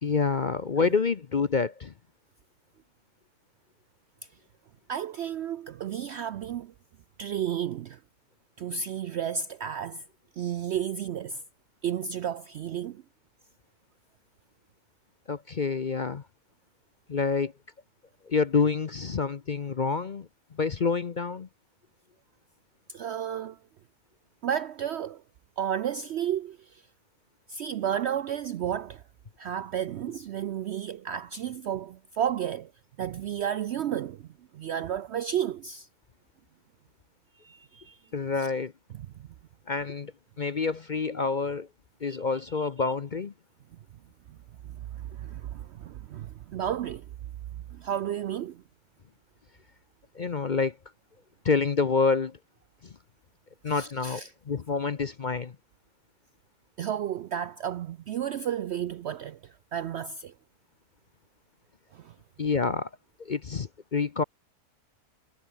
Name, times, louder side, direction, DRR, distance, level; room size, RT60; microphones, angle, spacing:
voice 1, 0.0-1.9 15.3-16.2 17.1-17.5 18.3-20.3 20.6-21.5 38.1-38.7 39.7-40.1 40.4-41.7 42.0-43.3 50.1-50.8 51.4-52.4 53.6-55.5 62.4-62.9 63.2-64.2, left 5 dB, 40° left, 0.7 m, -27 dB
voice 2, 4.9-6.7 7.2-8.0 8.6-10.0 10.4-11.4 11.8-13.0 22.9-23.6 24.4-25.2 25.6-26.8 27.5-29.0 29.4-32.7 33.0-34.3 34.5-35.9 37.4-38.0 38.3-38.5 39.2-39.3 42.1-42.2 42.6-42.9 44.7-47.1 47.5-48.6 53.7-54.3 56.8-60.3 61.9-62.1, right 9 dB, 70° right, 0.6 m, -32 dB
omnidirectional pair, 1.6 m